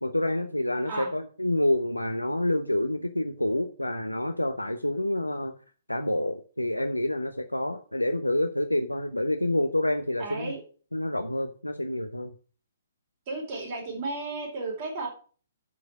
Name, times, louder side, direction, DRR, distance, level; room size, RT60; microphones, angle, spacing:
voice 1, 0.0-5.5 5.9-10.5 10.9-12.3, left 1 dB, 90° left, 7 dB, 0.8 m, -28 dB
voice 2, 10.2-10.6 13.3-15.1, right 3 dB, 40° right, 1 dB, 4.4 m, -33 dB
10.5 x 5.0 x 6.0 m, 0.41 s
figure-of-eight pair, 125°, 0 cm